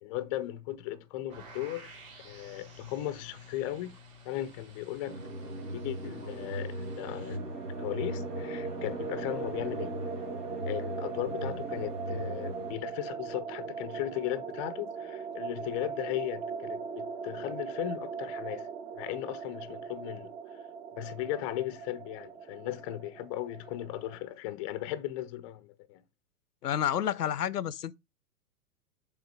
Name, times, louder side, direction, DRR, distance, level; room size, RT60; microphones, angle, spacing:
voice 1, 0.0-1.9 2.2-4.0 4.2-9.9 10.6-20.7 20.9-26.0, left 14 dB, 20° left, 0.4 m, -37 dB
sound 1, 1.3-7.4, left 1 dB, 60° right, 2.8 m, -52 dB
sound 2, 5.1-12.8, right 1 dB, 75° right, 2.0 m, -38 dB
sound 3, 7.3-24.2, right 5 dB, 40° right, 1.2 m, -40 dB
voice 2, 26.6-28.0, left 10 dB, 85° left, 0.5 m, -30 dB
7.2 x 3.7 x 4.6 m
figure-of-eight pair, 105°, 46 cm